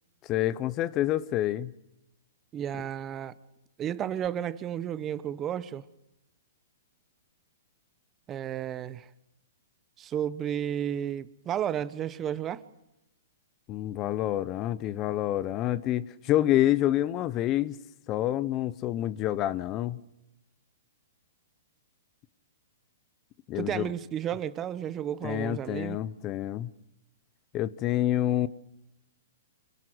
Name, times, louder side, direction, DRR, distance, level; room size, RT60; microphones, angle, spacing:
voice 1, 0.2-1.7 13.7-17.8 18.1-20.0 23.5-23.9 25.2-26.7 27.5-28.5, left 13 dB, 30° left, 0.9 m, -27 dB
voice 2, 2.5-3.3 3.8-5.8 8.3-9.1 10.0-12.6 23.5-26.0, right 10 dB, 25° right, 1.0 m, -32 dB
26.0 x 18.0 x 7.9 m
hypercardioid pair, 135°, 0 cm